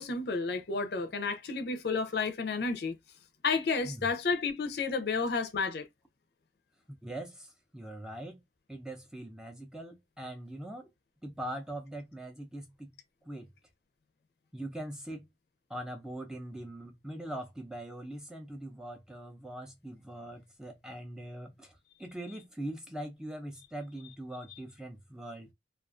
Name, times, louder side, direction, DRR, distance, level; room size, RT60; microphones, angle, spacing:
voice 1, 0.0-3.0 3.4-5.9, left 4 dB, 65° left, 0.5 m, -31 dB
voice 2, 7.0-8.4 8.7-10.9 11.2-12.9 13.2-13.5 14.5-15.3 15.7-25.5, right 1 dB, 5° right, 0.4 m, -42 dB
2.3 x 2.3 x 2.4 m
head